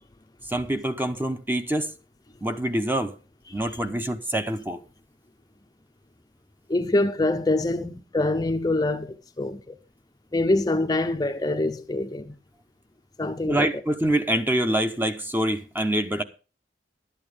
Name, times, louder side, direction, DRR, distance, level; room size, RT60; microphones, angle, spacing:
voice 1, 0.5-1.9 2.4-3.1 3.5-4.8 13.5-16.2, right 1 dB, 10° right, 0.9 m, -25 dB
voice 2, 6.7-9.7 10.3-12.4 13.2-13.7, left 2 dB, 25° left, 0.7 m, -25 dB
12.0 x 8.9 x 5.0 m
head